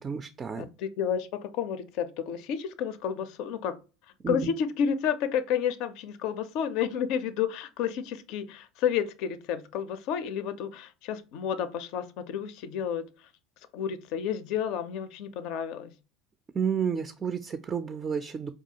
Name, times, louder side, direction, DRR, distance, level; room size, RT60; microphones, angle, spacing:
voice 1, 0.0-0.7 4.2-4.4 16.5-18.5, right 7 dB, 30° right, 0.3 m, -31 dB
voice 2, 0.6-3.8 4.3-13.1 13.7-15.9, left 8 dB, 60° left, 0.4 m, -31 dB
4.4 x 2.4 x 2.8 m
hypercardioid pair, 75°, 0 cm